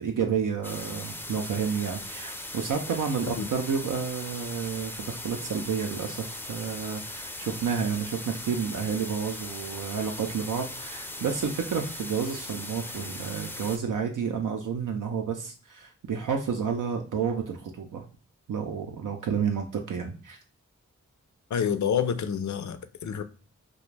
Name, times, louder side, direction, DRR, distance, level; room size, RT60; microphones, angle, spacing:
voice 1, 0.0-18.0 18.5-20.4, right 6 dB, 85° right, 0.5 m, -30 dB
sound 1, 0.6-13.8, left 1 dB, 5° left, 0.4 m, -39 dB
voice 2, 21.5-23.2, left 7 dB, 65° left, 0.4 m, -28 dB
2.5 x 2.1 x 3.2 m
wide cardioid pair, 55°, 31 cm